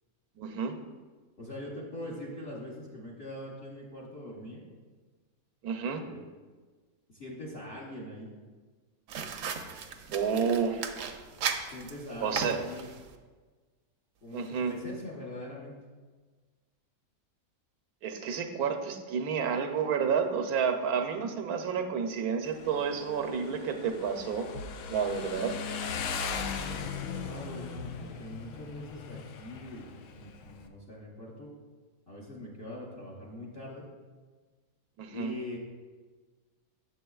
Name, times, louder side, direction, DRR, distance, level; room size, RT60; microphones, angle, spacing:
voice 1, 0.4-0.7 5.6-6.0 10.1-10.8 12.2-12.6 14.3-14.7 18.0-24.5 24.9-25.6 35.0-35.3, right 6 dB, 85° right, 6 dB, 1.1 m, -30 dB
voice 2, 1.4-4.6 6.0-6.2 7.1-8.3 11.7-12.9 14.2-15.7 26.7-31.5 32.1-33.9 35.1-35.6, left 1 dB, 45° left, -5 dB, 1.1 m, -42 dB
sound 1, 9.1-13.2, right 6 dB, 65° right, 0.9 m, -37 dB
Motorcycle, 22.4-30.7, left 6 dB, 80° left, 1.0 m, -38 dB
8.8 x 6.9 x 2.3 m, 1.4 s
omnidirectional pair, 1.5 m